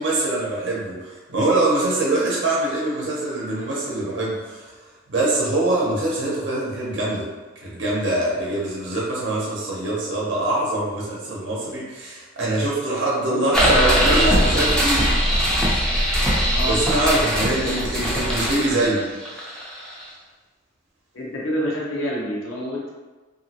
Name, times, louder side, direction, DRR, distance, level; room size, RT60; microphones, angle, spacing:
voice 1, 0.0-4.6 5.1-7.3 7.6-15.1 15.6-15.8 16.7-19.0 19.3-19.5, right 2 dB, 60° right, -5 dB, 0.7 m, -24 dB
voice 2, 13.2-14.4 16.5-16.8 17.6-18.1 21.1-22.9, equal, 75° left, -4 dB, 0.7 m, -28 dB
sound 1, 13.5-20.1, equal, 5° left, 0.5 m, -21 dB
3.0 x 2.6 x 2.8 m, 1.3 s
head